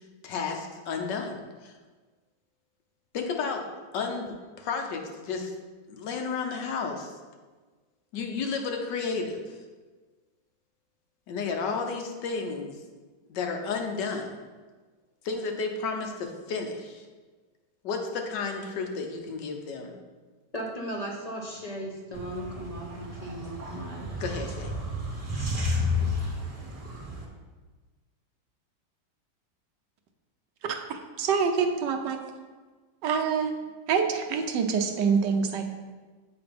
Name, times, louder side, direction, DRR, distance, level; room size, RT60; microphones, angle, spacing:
voice 1, 0.2-1.7 3.1-3.6 3.9-5.5 5.9-7.1 8.1-9.5 11.3-12.8 13.3-14.4 15.2-17.1 17.8-19.9 24.2-24.7, left 4 dB, 80° left, 4 dB, 1.5 m, -32 dB
voice 2, 20.5-24.1, right 1 dB, 35° left, -1 dB, 0.7 m, -36 dB
sound 1, 22.1-27.2, left 2 dB, 25° right, 0.9 m, -32 dB
voice 3, 30.7-32.2 33.0-33.5 33.9-35.7, right 6 dB, 80° right, 5 dB, 1.3 m, -26 dB
8.0 x 4.0 x 5.2 m, 1.4 s
omnidirectional pair, 1.9 m